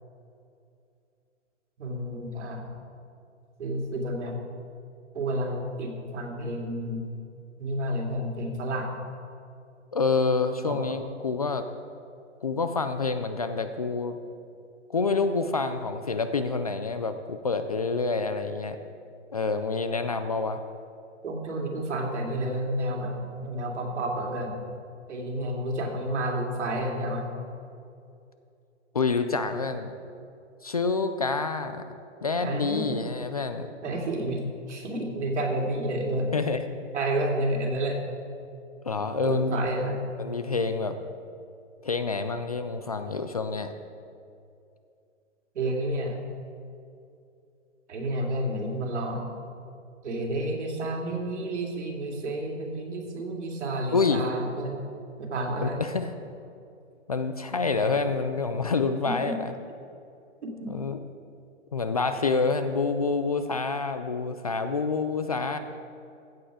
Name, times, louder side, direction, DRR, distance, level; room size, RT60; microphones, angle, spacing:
voice 1, 1.8-2.7 3.6-4.4 5.1-7.1 7.6-9.0 10.7-10.8 21.2-24.6 25.1-27.3 32.4-33.1 33.8-36.3 36.9-38.0 39.2-40.0 45.5-46.2 47.9-49.3 50.0-54.8 55.2-55.8 59.0-59.4 60.4-60.7, right 1 dB, 65° right, 0 dB, 2.7 m, -30 dB
voice 2, 9.9-11.7 12.4-14.2 14.9-18.8 19.3-20.6 28.9-29.9 30.6-31.9 32.2-33.7 36.3-36.6 38.9-39.6 40.2-41.0 41.8-43.7 53.9-54.2 55.8-56.1 57.1-59.5 60.7-61.0 61.7-65.6, left 4 dB, 35° left, 9 dB, 0.4 m, -27 dB
15.0 x 7.8 x 4.9 m, 2.5 s
hypercardioid pair, 160°, 37 cm